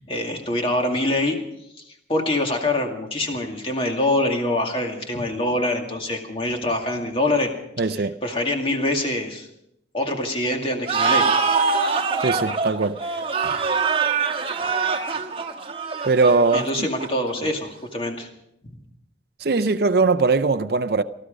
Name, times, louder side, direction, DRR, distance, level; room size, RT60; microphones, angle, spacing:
voice 1, 0.1-1.4 2.1-7.5 8.2-9.5 9.9-11.3 16.5-18.3, left 1 dB, 30° left, 2.2 m, -24 dB
voice 2, 7.8-8.2 12.2-13.0 16.0-16.7 19.4-21.0, right 3 dB, 55° right, 0.6 m, -20 dB
sound 1, 10.9-17.3, right 5 dB, 30° right, 1.3 m, -23 dB
19.0 x 13.5 x 5.2 m
head